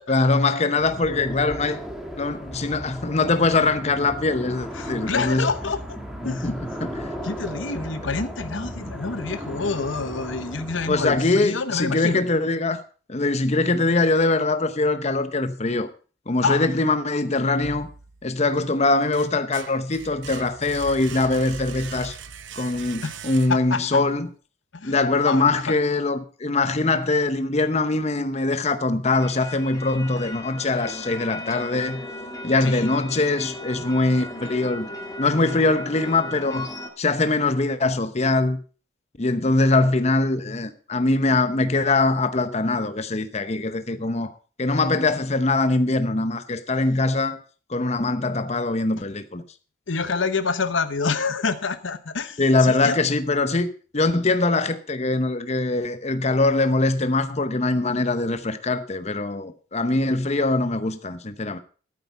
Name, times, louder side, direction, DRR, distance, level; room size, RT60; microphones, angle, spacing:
voice 1, 0.1-1.8 2.2-5.5 6.2-6.5 6.8-6.9 10.9-12.8 13.1-15.9 16.3-17.9 18.2-22.1 22.5-24.3 24.8-32.0 32.4-34.9 35.2-36.7 37.0-38.6 39.2-47.4 47.7-49.4 52.4-53.7 53.9-61.6, left 3 dB, 35° left, 0.8 m, -22 dB
sound 1, 0.8-11.2, equal, ahead, 1.8 m, -36 dB
voice 2, 4.7-6.0 6.2-6.5 7.2-12.2 16.4-16.7 23.0-23.2 23.5-24.0 24.7-25.0 25.3-25.6 32.6-32.9 49.9-53.0, left 4 dB, 80° left, 1.0 m, -27 dB
sound 2, 17.6-18.4 18.9-23.9, right 6 dB, 75° right, 0.7 m, -40 dB
sound 3, 29.1-36.9, left 1 dB, 20° left, 1.9 m, -36 dB
12.0 x 8.8 x 5.4 m
head